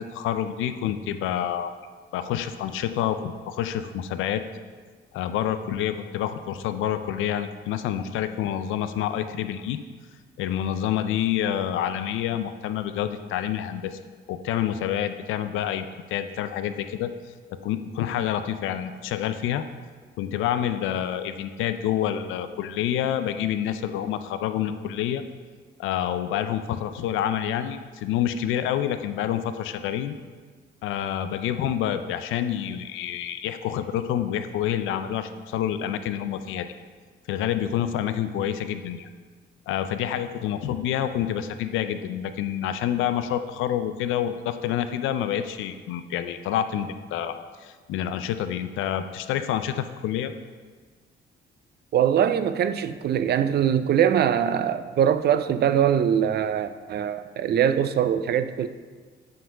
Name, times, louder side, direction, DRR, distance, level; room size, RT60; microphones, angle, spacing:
voice 1, 0.0-1.7 2.1-4.4 5.1-9.8 10.4-14.0 14.3-17.1 17.6-19.6 20.2-25.2 25.8-30.1 30.8-36.7 37.3-39.1 39.7-50.3, left 10 dB, 85° left, 10 dB, 0.4 m, -28 dB
voice 2, 51.9-58.7, right 9 dB, 55° right, 11 dB, 0.4 m, -22 dB
7.6 x 3.8 x 5.5 m, 1.5 s
cardioid pair, 90°, 20 cm